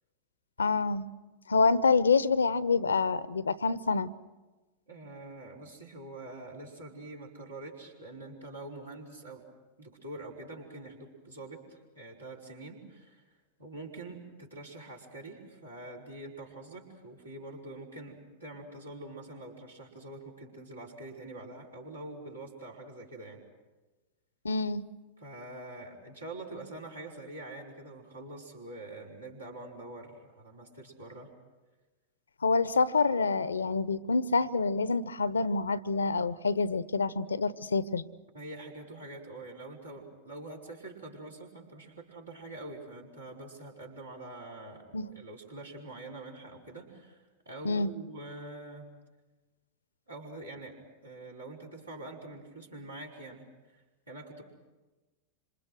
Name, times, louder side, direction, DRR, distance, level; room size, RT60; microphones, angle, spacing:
voice 1, 0.6-1.1 1.5-4.1 24.4-24.8 32.4-38.0 44.9-45.1 47.6-47.9, left 4 dB, 75° left, 18 dB, 0.8 m, -27 dB
voice 2, 4.9-9.4 9.8-13.3 13.6-23.4 25.2-31.3 38.3-48.9 50.1-50.8 51.0-53.5 53.7-54.4, right 2 dB, 80° right, -3 dB, 5.4 m, -45 dB
27.0 x 27.0 x 6.3 m, 1.2 s
figure-of-eight pair, 90°, 0 cm